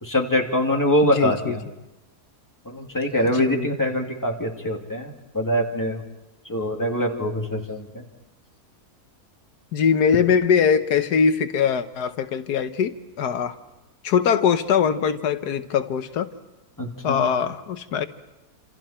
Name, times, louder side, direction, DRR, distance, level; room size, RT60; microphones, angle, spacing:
voice 1, 0.0-1.6 2.6-6.0 6.4-8.0 16.8-17.3, equal, 10° left, 1 dB, 2.6 m, -24 dB
voice 2, 1.0-1.5 3.3-3.7 9.7-13.6 14.0-16.3 17.0-18.1, left 7 dB, 90° left, 10 dB, 1.5 m, -22 dB
28.5 x 27.0 x 4.4 m, 1.0 s
omnidirectional pair, 1.7 m